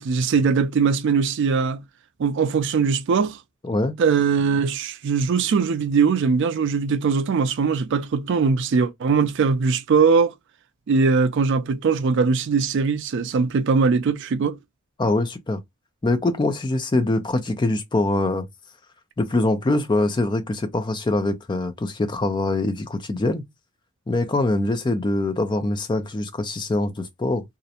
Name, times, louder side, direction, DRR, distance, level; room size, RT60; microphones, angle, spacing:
voice 1, 0.0-1.8 2.2-3.4 4.0-10.3 10.9-14.6, right 5 dB, 60° right, 0.4 m, -21 dB
voice 2, 3.6-3.9 15.0-15.6 16.0-18.5 19.2-23.4 24.1-27.4, left 2 dB, 20° left, 0.4 m, -23 dB
2.4 x 2.1 x 2.7 m
head